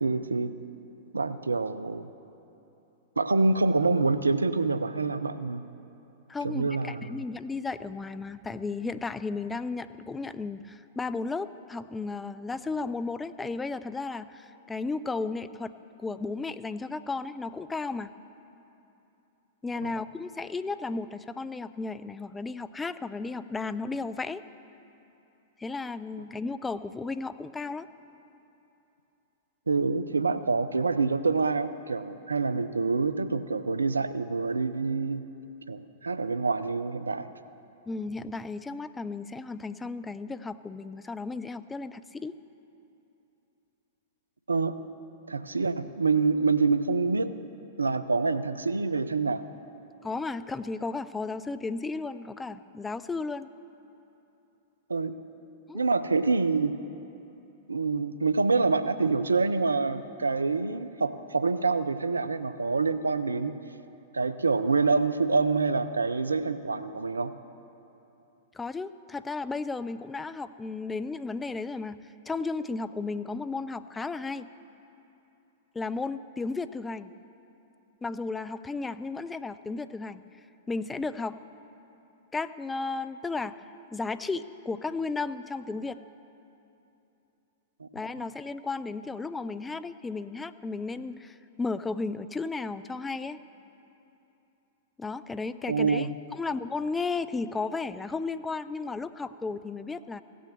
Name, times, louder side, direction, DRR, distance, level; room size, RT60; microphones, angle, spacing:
voice 1, 0.0-0.5 1.1-2.1 3.2-5.6 6.4-7.1 19.8-19.9 29.7-35.2 35.7-37.3 44.5-44.8 45.3-47.3 47.8-49.4 54.9-55.1 55.7-56.7 57.7-63.5 64.1-67.3 87.8-87.9 88.2-88.3 95.7-96.1, right 4 dB, 85° right, 12 dB, 0.5 m, -26 dB
voice 2, 6.3-15.7 16.0-18.1 19.6-24.4 25.6-27.9 37.9-42.4 50.0-53.5 55.7-55.8 68.5-74.5 75.7-77.1 78.0-80.2 80.7-81.4 82.3-83.6 83.9-86.0 87.9-93.4 95.0-100.2, left 3 dB, 15° left, 13 dB, 0.4 m, -34 dB
16.0 x 6.3 x 7.0 m, 2.9 s
figure-of-eight pair, 100°, 0 cm